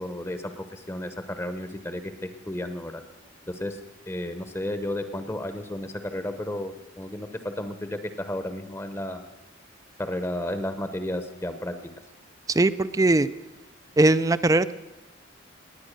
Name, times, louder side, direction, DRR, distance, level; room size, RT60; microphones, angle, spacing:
voice 1, 0.0-3.0 3.5-3.8 4.1-9.2 10.0-11.8, left 1 dB, 15° left, 9 dB, 0.8 m, -33 dB
voice 2, 12.5-13.3 14.0-14.7, right 2 dB, 15° right, 15 dB, 0.4 m, -20 dB
19.0 x 9.4 x 6.6 m, 1.0 s
head